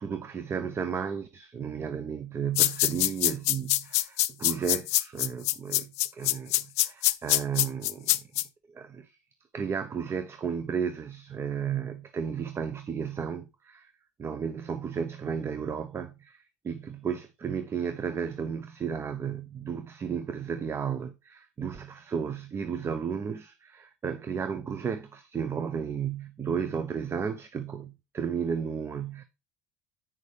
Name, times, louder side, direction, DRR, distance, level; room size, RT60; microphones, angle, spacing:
voice 1, 0.0-8.3 8.7-9.2 9.5-13.9 14.2-29.2, right 7 dB, 30° right, 0.8 m, -33 dB
sound 1, 2.6-8.4, left 16 dB, 70° left, 0.5 m, -24 dB
9.0 x 6.6 x 3.4 m
figure-of-eight pair, 65°, 8 cm